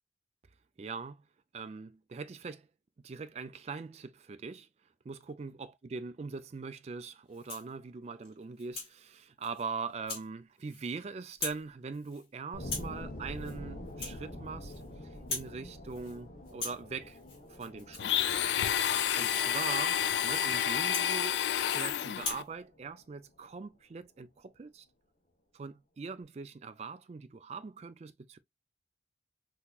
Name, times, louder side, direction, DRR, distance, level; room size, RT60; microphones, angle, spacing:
voice 1, 0.8-1.2 1.5-2.7 3.0-4.7 5.1-14.7 15.3-17.2 17.5-18.6 19.1-20.0 20.2-24.9 25.5-28.4, right 4 dB, 35° right, 0.3 m, -42 dB
Rattle (instrument), 7.3-7.7 8.2-8.9 9.4-9.6 10.1-10.3 10.6-11.0 11.3-11.7 11.9-12.3 12.6-13.0 13.3-13.6 13.9-14.9 15.1-15.6 15.9-16.2 16.5-21.8 22.1-22.5, left 4 dB, 30° left, 1.8 m, -42 dB
sound 1, 12.5-23.3, left 1 dB, 55° left, 1.2 m, -47 dB
Domestic sounds home sounds, 18.0-22.4, left 9 dB, 75° left, 0.3 m, -29 dB
3.9 x 2.8 x 2.3 m
head